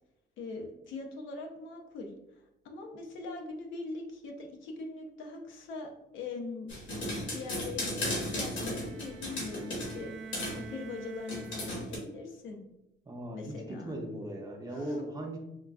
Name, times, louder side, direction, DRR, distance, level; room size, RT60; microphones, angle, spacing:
voice 1, 0.4-2.1 2.6-6.7 7.3-10.1 10.6-12.6 13.3-14.0 14.7-15.1, left 3 dB, 90° left, 3 dB, 0.6 m, -42 dB
sound 1, 6.7-10.0 10.3-10.6 11.3-12.0, left 1 dB, 70° left, 1.2 m, -35 dB
Bowed string instrument, 8.0-12.2, right 5 dB, 75° right, 0.6 m, -48 dB
voice 2, 13.1-15.4, right 1 dB, 20° right, 1 dB, 0.5 m, -38 dB
3.8 x 2.2 x 2.3 m, 0.89 s
cardioid pair, 115°, 20 cm